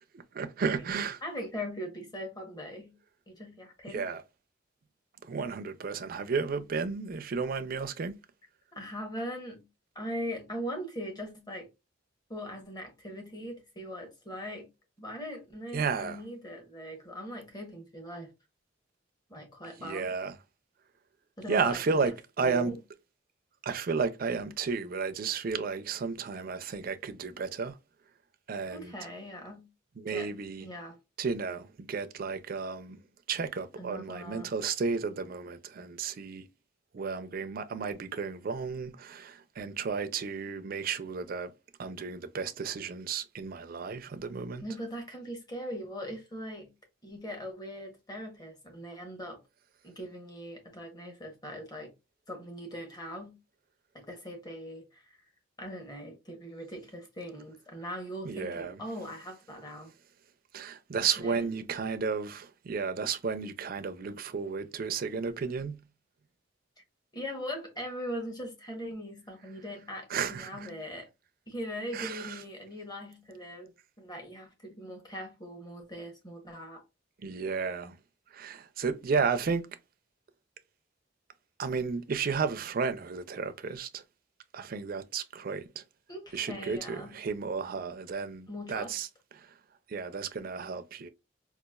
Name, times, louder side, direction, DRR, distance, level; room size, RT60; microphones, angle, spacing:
voice 1, 0.1-1.2 3.9-4.2 5.3-8.2 15.7-16.2 19.8-20.4 21.5-22.7 23.6-27.8 28.5-28.9 30.0-30.7 31.2-33.0 33.3-36.5 36.9-41.5 41.8-44.6 58.2-58.8 60.5-65.8 70.1-70.7 71.9-72.4 77.2-78.0 78.3-79.7 81.6-84.0 84.5-85.8 86.3-89.1 89.4-89.5 89.9-91.1, right 5 dB, 50° right, 0.4 m, -33 dB
voice 2, 1.2-3.0 3.3-4.1 8.7-9.7 9.9-11.7 12.3-14.7 15.0-18.3 19.3-20.1 21.4-22.1 22.4-22.8 28.7-29.7 30.1-30.3 30.6-31.0 33.8-34.5 44.6-46.7 47.0-49.4 49.8-51.9 52.3-53.4 53.9-55.2 55.6-59.9 61.2-61.5 67.1-71.1 71.5-73.7 74.0-76.8 86.1-87.2 88.5-89.0, equal, 20° left, 1.0 m, -40 dB
4.0 x 2.4 x 2.3 m
head